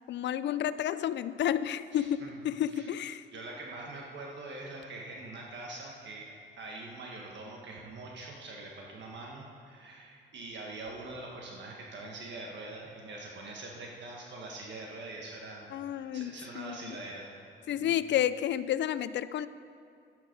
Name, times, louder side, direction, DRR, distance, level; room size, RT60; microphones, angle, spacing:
voice 1, 0.1-3.2 15.7-17.0 17.7-19.5, left 10 dB, 65° left, 15 dB, 0.5 m, -31 dB
voice 2, 1.9-2.4 2.7-2.9 3.3-15.7 16.0-17.5 17.8-18.0, right 2 dB, 65° right, -1 dB, 1.6 m, -44 dB
12.5 x 10.0 x 5.4 m, 2.4 s
cardioid pair, 90°, 20 cm